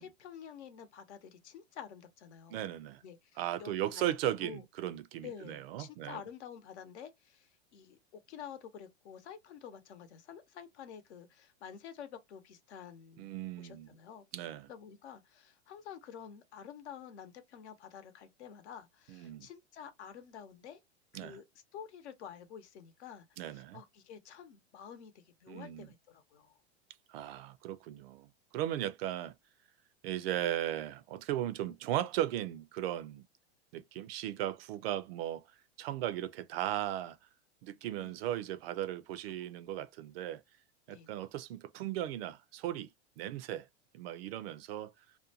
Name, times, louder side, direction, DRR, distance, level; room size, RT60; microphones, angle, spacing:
voice 1, 0.0-2.6 3.0-4.1 4.4-4.6 5.2-14.2 14.7-20.8 21.1-21.4 21.7-26.6 38.0-38.2 40.9-41.2, left 8 dB, 80° left, 0.8 m, -49 dB
voice 2, 2.5-3.0 3.4-6.2 13.2-13.9 14.3-14.7 19.1-19.5 21.1-21.4 23.4-23.8 25.5-25.9 27.1-29.3 30.0-33.2 33.7-35.4 35.8-37.2 37.6-40.4 40.9-42.9 43.2-43.7 43.9-44.9, right 12 dB, 60° right, 0.5 m, -37 dB
2.5 x 2.1 x 2.7 m
hypercardioid pair, 125°, 33 cm